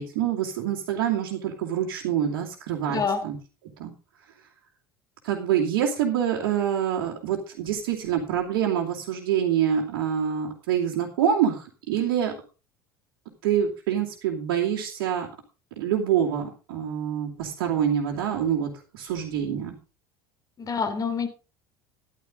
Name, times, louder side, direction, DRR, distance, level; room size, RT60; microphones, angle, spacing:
voice 1, 0.0-3.3 3.8-3.9 5.2-12.3 13.4-15.3 15.8-19.8, right 9 dB, 60° right, -4 dB, 2.8 m, -26 dB
voice 2, 2.9-3.2 20.6-21.3, left 5 dB, 30° left, 8 dB, 3.0 m, -26 dB
14.0 x 11.0 x 3.9 m, 0.34 s
figure-of-eight pair, 70°, 12 cm